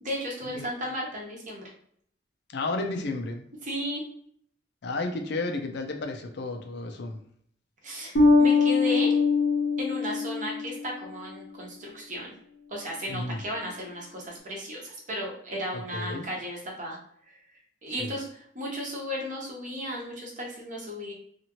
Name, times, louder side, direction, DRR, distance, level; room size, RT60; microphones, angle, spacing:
voice 1, 0.0-1.7 3.6-4.0 7.8-9.2 9.8-12.3 12.7-17.0 17.3-17.4 17.8-21.1, equal, 40° right, -2 dB, 0.9 m, -35 dB
voice 2, 2.5-3.4 4.8-7.2 13.1-13.4 15.7-16.3 18.0-18.1, left 2 dB, 60° left, 4 dB, 0.5 m, -32 dB
Bass guitar, 8.2-10.8, left 4 dB, 85° left, 0.8 m, -22 dB
2.8 x 2.4 x 2.9 m, 0.65 s
head